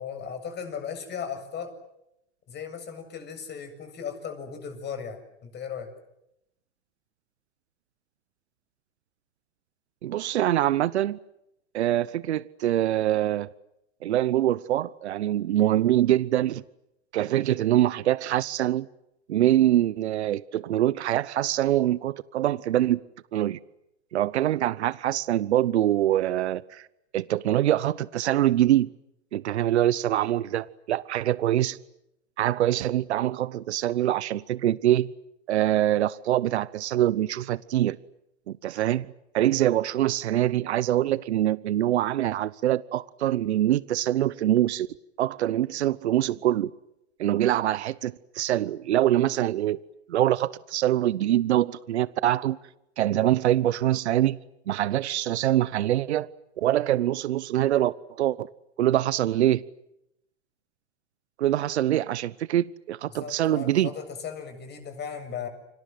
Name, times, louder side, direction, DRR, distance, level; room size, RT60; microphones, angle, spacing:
voice 1, 0.0-1.8 2.5-5.9 63.1-65.5, left 7 dB, 30° left, 7.8 m, -36 dB
voice 2, 10.0-11.2 11.7-13.5 14.0-16.6 17.1-18.9 19.3-23.0 23.3-23.6 24.1-26.9 27.1-28.9 29.3-31.8 32.4-35.1 35.5-38.0 38.5-39.1 39.3-44.9 45.2-46.7 47.2-49.8 50.1-52.6 53.0-54.4 54.7-56.3 56.6-58.5 58.8-59.6 61.4-63.9, right 13 dB, 80° right, 0.9 m, -24 dB
30.0 x 25.0 x 7.8 m
hypercardioid pair, 105°, 33 cm